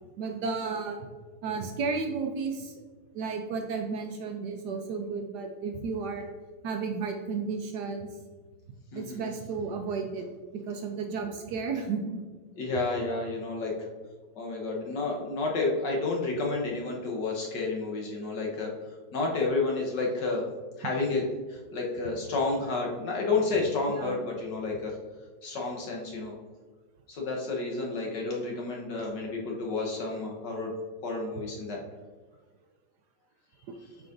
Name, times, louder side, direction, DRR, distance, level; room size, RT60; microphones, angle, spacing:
voice 1, 0.2-1.1 1.4-2.7 3.1-6.3 6.6-8.2 8.9-10.3 10.5-12.2 23.9-24.2 33.7-33.8, right 4 dB, 75° right, 4 dB, 0.9 m, -33 dB
voice 2, 8.9-9.3 12.6-13.7 14.3-18.7 19.1-20.4 20.8-21.2 21.5-24.9 25.4-26.3 27.1-30.7 31.0-31.8, left 3 dB, 60° left, -1 dB, 1.6 m, -30 dB
7.8 x 4.8 x 2.6 m, 1.4 s
omnidirectional pair, 2.4 m